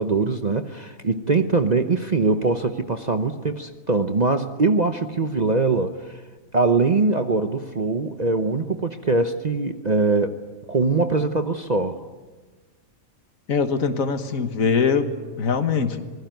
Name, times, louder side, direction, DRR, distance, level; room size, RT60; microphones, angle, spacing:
voice 1, 0.0-6.2 6.5-10.4 10.7-12.0, right 3 dB, 35° right, 7 dB, 0.9 m, -22 dB
voice 2, 13.5-15.1 15.4-16.0, left 5 dB, 75° left, 7 dB, 1.9 m, -22 dB
27.0 x 19.5 x 9.2 m, 1.3 s
omnidirectional pair, 1.5 m